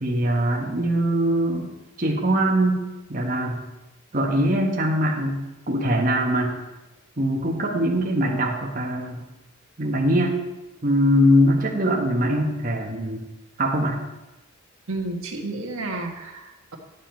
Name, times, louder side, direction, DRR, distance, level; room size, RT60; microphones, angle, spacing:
voice 1, 0.0-3.6 4.1-5.4 5.7-6.5 7.2-9.2 9.8-10.4 10.8-13.2 13.6-14.0, equal, 40° right, -1 dB, 1.3 m, -22 dB
voice 2, 14.9-16.8, right 2 dB, 80° right, 1 dB, 1.5 m, -31 dB
11.0 x 7.3 x 4.5 m, 1.0 s
head